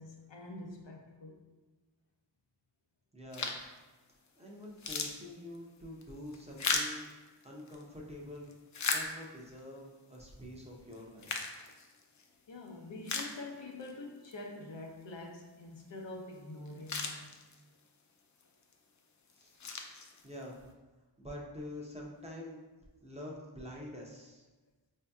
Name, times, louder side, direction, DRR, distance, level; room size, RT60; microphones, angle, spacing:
voice 1, 0.0-1.4 12.5-17.3, left 2 dB, 80° left, 0 dB, 0.7 m, -46 dB
voice 2, 3.1-3.6 4.4-7.1 7.4-8.5 8.9-11.3 19.4-19.5 20.2-20.6 21.2-22.6 23.0-24.4, left 1 dB, 15° right, -3 dB, 0.6 m, -46 dB
sound 1, 3.3-3.8 4.3-4.4 4.6-7.8 8.3-9.6 10.1-10.2 10.9-12.3 12.7-12.8 13.0-13.9 14.2-14.3 16.3-16.4 16.7-17.8 18.4-18.7 19.3-20.5, left 4 dB, 45° left, 0.4 m, -37 dB
4.3 x 2.7 x 2.3 m, 1.2 s
wide cardioid pair, 75°, 43 cm